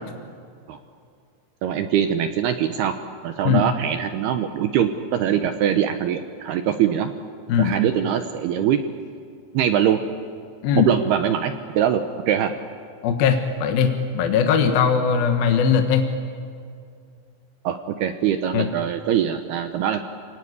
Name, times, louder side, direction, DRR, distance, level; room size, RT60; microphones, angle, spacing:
voice 1, 1.6-2.9 3.2-7.1 7.6-8.8 9.5-10.0 10.7-12.0 12.3-12.5 17.6-20.0, right 9 dB, 75° right, 7 dB, 2.5 m, -22 dB
voice 2, 13.0-16.1 18.5-18.7, left 7 dB, 65° left, 5 dB, 2.6 m, -19 dB
29.5 x 18.5 x 9.7 m, 2.3 s
omnidirectional pair, 5.5 m